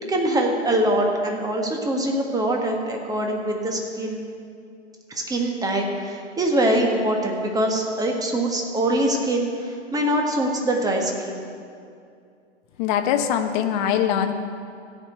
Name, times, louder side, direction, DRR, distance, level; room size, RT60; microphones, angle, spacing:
voice 1, 0.1-4.2 5.1-11.4, right 1 dB, 10° right, 1 dB, 1.5 m, -23 dB
voice 2, 12.8-14.3, left 9 dB, 40° left, 6 dB, 1.0 m, -22 dB
16.0 x 5.3 x 7.9 m, 2.4 s
hypercardioid pair, 115°, 35 cm